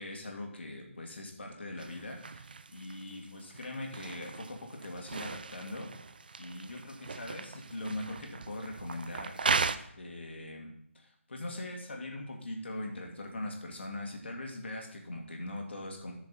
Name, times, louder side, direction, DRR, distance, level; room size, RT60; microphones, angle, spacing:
voice 1, 0.0-5.9 6.4-16.1, left 1 dB, 55° left, 1 dB, 2.2 m, -41 dB
sound 1, 1.8-9.8, right 4 dB, 40° right, 0.4 m, -37 dB
14.0 x 6.4 x 4.3 m, 0.71 s
figure-of-eight pair, 155°, 7 cm